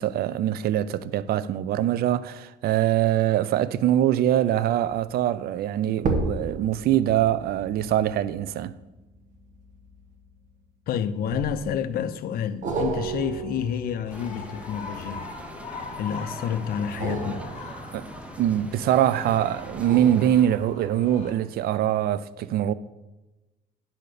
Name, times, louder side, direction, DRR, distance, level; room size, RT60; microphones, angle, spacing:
voice 1, 0.0-8.7 17.9-18.0 18.4-22.7, right 11 dB, 65° right, 0.5 m, -23 dB
sound 1, 4.7-5.1 5.9-10.6 11.3-11.9 12.6-15.6 16.8-18.9 19.6-21.0 21.5-21.6, right 3 dB, 50° right, 1.2 m, -34 dB
voice 2, 10.9-15.3 16.0-17.5, left 8 dB, 65° left, 0.6 m, -29 dB
sound 2, 14.0-21.3, left 4 dB, 45° left, 2.1 m, -41 dB
sound 3, 14.1-20.5, right 1 dB, 5° right, 0.7 m, -43 dB
10.0 x 4.2 x 6.6 m
cardioid pair, 110°, 17 cm